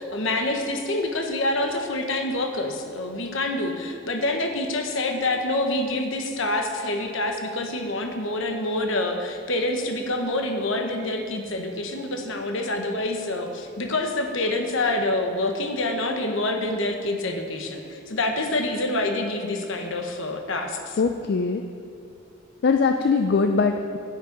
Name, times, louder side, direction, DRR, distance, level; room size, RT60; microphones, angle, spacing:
voice 1, 0.0-21.0, left 2 dB, 65° left, 4 dB, 1.0 m, -27 dB
voice 2, 21.0-21.6 22.6-24.0, left 4 dB, 50° left, 6 dB, 0.4 m, -21 dB
9.3 x 7.7 x 5.3 m, 2.6 s
head